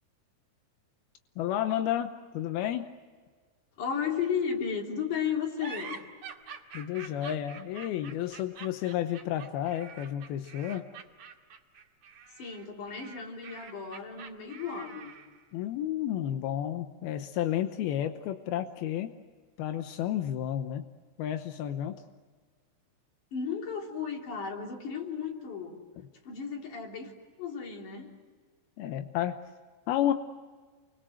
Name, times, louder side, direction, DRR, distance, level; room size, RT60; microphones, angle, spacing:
voice 1, 1.4-2.9 6.7-10.9 15.5-19.1 19.6-20.9 21.2-22.0 28.8-29.4 29.9-30.1, left 11 dB, 75° left, 7 dB, 2.3 m, -31 dB
voice 2, 3.8-6.0 12.4-15.1 23.3-25.8 26.2-27.1 27.4-28.2, left 7 dB, 45° left, 1 dB, 4.3 m, -34 dB
sound 1, 5.6-15.4, right 6 dB, 50° right, 2.9 m, -46 dB
29.0 x 24.0 x 7.8 m, 1.5 s
omnidirectional pair, 5.5 m